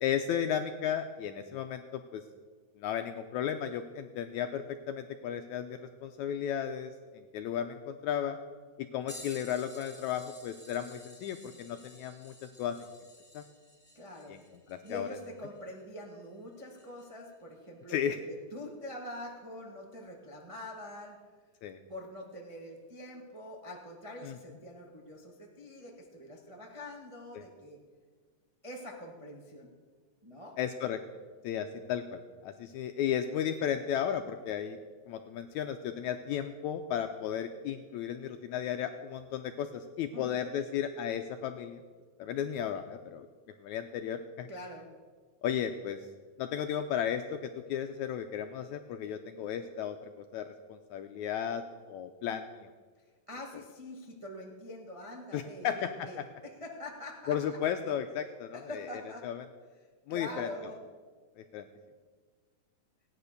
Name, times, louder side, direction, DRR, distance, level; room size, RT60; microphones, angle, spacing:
voice 1, 0.0-2.2 2.8-8.4 8.9-12.8 13.3-13.4 14.3-14.4 14.7-15.1 17.9-18.2 21.6-21.8 24.2-24.3 27.3-27.4 30.6-31.0 31.4-34.8 35.1-41.8 42.2-43.3 43.6-44.5 45.4-46.0 46.4-52.7 55.3-56.2 57.3-58.9 59.2-59.4 60.1-60.5 61.4-61.6, left 9 dB, 85° left, 7 dB, 1.7 m, -34 dB
sound 1, 9.1-17.3 18.0-18.1 20.4-20.5 21.5-21.7 22.8-22.9, left 1 dB, 5° right, 1.6 m, -54 dB
voice 2, 13.9-14.3 14.8-21.2 21.9-27.8 28.6-29.7 30.2-30.6 40.1-40.4 44.5-44.9 53.3-57.6 58.5-59.3 60.1-60.8, left 1 dB, 55° right, -1 dB, 0.3 m, -45 dB
16.5 x 9.8 x 6.6 m, 1.5 s
omnidirectional pair, 3.9 m